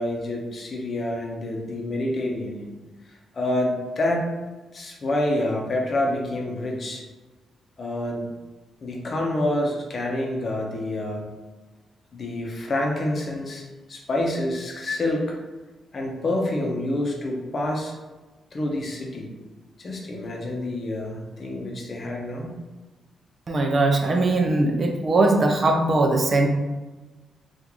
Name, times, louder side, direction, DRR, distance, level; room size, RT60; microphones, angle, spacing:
voice 1, 0.0-2.7 3.3-4.3 4.7-7.0 7.8-8.3 8.8-11.3 12.1-15.3 15.9-17.9 18.5-19.3 19.8-22.5, left 1 dB, 40° left, -1 dB, 0.7 m, -27 dB
voice 2, 23.5-26.5, right 2 dB, 40° right, 3 dB, 0.5 m, -20 dB
3.6 x 2.5 x 3.0 m, 1.2 s
cardioid pair, 110°, 0 cm